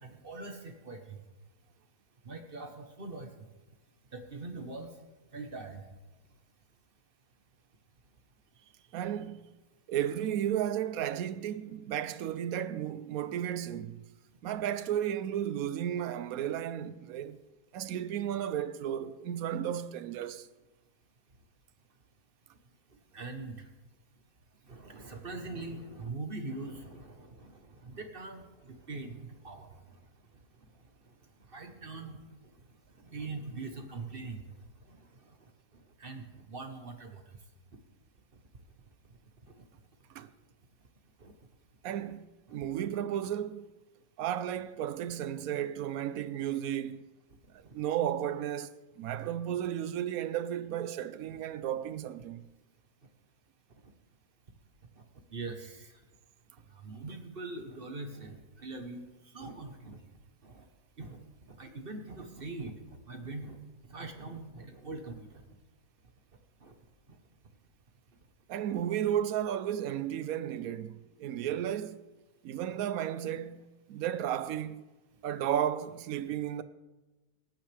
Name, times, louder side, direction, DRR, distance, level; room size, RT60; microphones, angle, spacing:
voice 1, 0.0-1.2 2.2-3.3 4.1-4.9 5.3-5.8 23.1-23.7 24.7-30.0 31.5-32.2 33.0-34.5 34.9-35.0 36.0-37.2 41.2-41.3 42.5-42.6 47.6-47.8 51.3-51.4 55.3-55.9 56.7-59.0 59.3-60.0 60.4-60.6 61.0-61.2 61.6-62.7 63.1-63.6 63.9-65.4 66.6-66.7 68.7-68.8, right 3 dB, 40° right, 1.2 m, -42 dB
voice 2, 8.9-9.5 9.9-14.0 14.4-17.4 17.7-20.5 40.1-40.3 41.8-43.7 44.2-47.1 47.5-48.7 49.0-52.4 68.5-72.0 72.4-74.8 75.2-76.6, right 10 dB, 70° right, 1.0 m, -33 dB
26.5 x 9.0 x 3.4 m
omnidirectional pair, 1.6 m